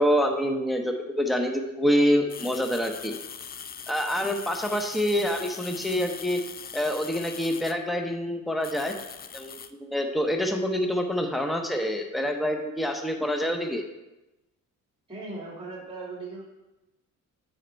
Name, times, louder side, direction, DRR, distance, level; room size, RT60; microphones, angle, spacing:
voice 1, 0.0-3.1 3.9-6.4 6.7-8.9 9.3-13.9, equal, ahead, 4 dB, 0.7 m, -26 dB
sound 1, 2.3-7.8 8.6-9.7, left 7 dB, 30° left, 0.4 m, -41 dB
voice 2, 15.1-16.4, right 3 dB, 15° right, -3 dB, 2.3 m, -38 dB
9.1 x 4.4 x 4.4 m, 1.0 s
cardioid pair, 105°, 33 cm